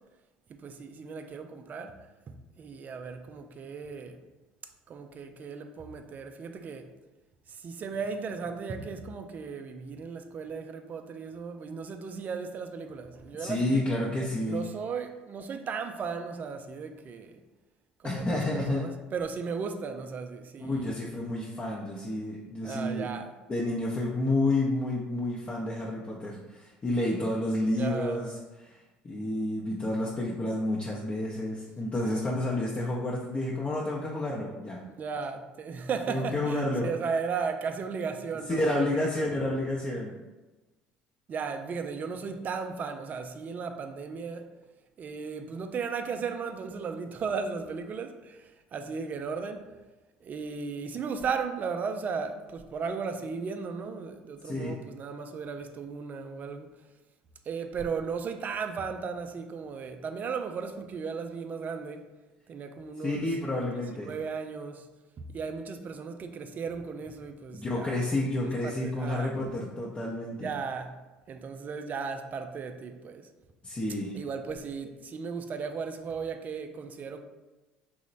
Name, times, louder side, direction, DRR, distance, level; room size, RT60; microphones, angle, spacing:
voice 1, 0.5-2.0 2.3-4.2 4.9-6.9 7.5-13.9 14.5-17.3 18.0-20.9 22.6-23.3 27.7-28.2 34.9-39.3 41.3-44.5 45.0-49.7 50.2-56.8 57.5-62.1 62.5-63.3 64.0-64.9 65.2-68.1 68.6-69.3 70.4-71.0 71.3-73.3 74.1-77.2, right 5 dB, 40° right, 0.4 m, -36 dB
voice 2, 13.4-14.6 18.0-18.9 20.6-23.1 23.5-28.4 28.6-28.8 29.0-34.8 36.1-36.9 38.5-40.2 54.4-54.8 63.0-64.1 67.5-70.5 73.6-74.2, left 1 dB, 30° left, 0.5 m, -30 dB
3.0 x 2.1 x 3.9 m
hypercardioid pair, 70°, 4 cm